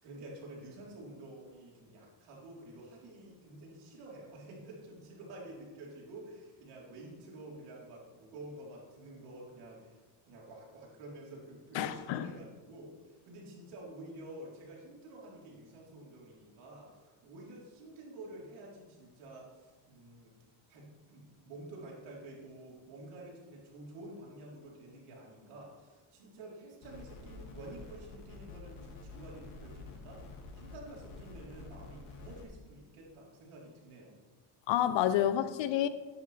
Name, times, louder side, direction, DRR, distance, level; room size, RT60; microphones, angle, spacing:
voice 1, 0.0-20.3 20.7-30.3 30.5-34.2, right 1 dB, 80° right, 4.2 m, -49 dB
voice 2, 11.7-12.2 34.7-35.9, left 11 dB, 60° left, 0.8 m, -29 dB
sound 1, 26.8-32.4, left 3 dB, 80° left, 3.1 m, -49 dB
13.5 x 10.5 x 3.5 m
cardioid pair, 115°, 50 cm